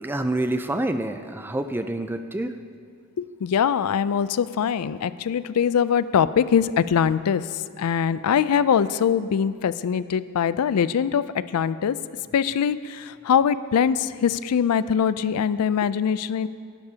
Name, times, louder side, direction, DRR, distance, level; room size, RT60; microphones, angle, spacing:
voice 1, 0.0-2.6, right 1 dB, 10° right, 9 dB, 0.4 m, -27 dB
voice 2, 3.2-7.4 7.8-12.0 12.3-16.5, left 7 dB, 85° left, 15 dB, 0.4 m, -22 dB
17.5 x 11.5 x 2.8 m, 2.2 s
head